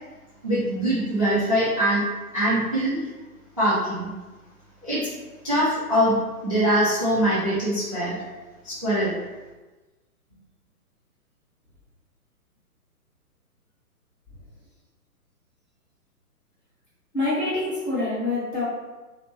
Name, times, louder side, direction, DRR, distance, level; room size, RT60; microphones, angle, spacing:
voice 1, 0.4-2.1 2.3-3.0 3.6-4.1 4.8-5.1 5.4-6.2 6.4-8.2 8.6-9.1, right 1 dB, 25° right, -8 dB, 0.3 m, -23 dB
voice 2, 17.1-18.6, left 2 dB, 20° left, -11 dB, 1.2 m, -26 dB
3.1 x 2.1 x 2.9 m, 1.2 s
figure-of-eight pair, 130°, 46 cm